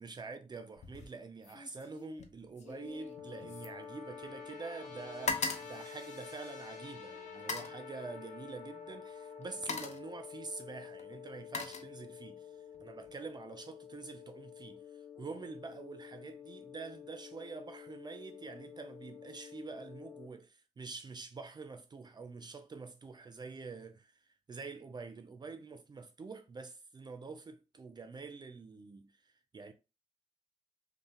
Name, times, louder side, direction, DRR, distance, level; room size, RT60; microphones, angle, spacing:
voice 1, 0.0-29.7, right 4 dB, 35° right, 0.4 m, -46 dB
sound 1, 0.8-1.1 1.4-4.6 4.8-6.7 7.3-7.8 8.8-9.0 9.4-10.1 11.0-12.4 12.7-13.1, left 4 dB, 70° left, 0.6 m, -41 dB
sound 2, 2.6-20.3, left 7 dB, 85° left, 1.3 m, -49 dB
5.4 x 2.1 x 2.8 m
wide cardioid pair, 175°, 12 cm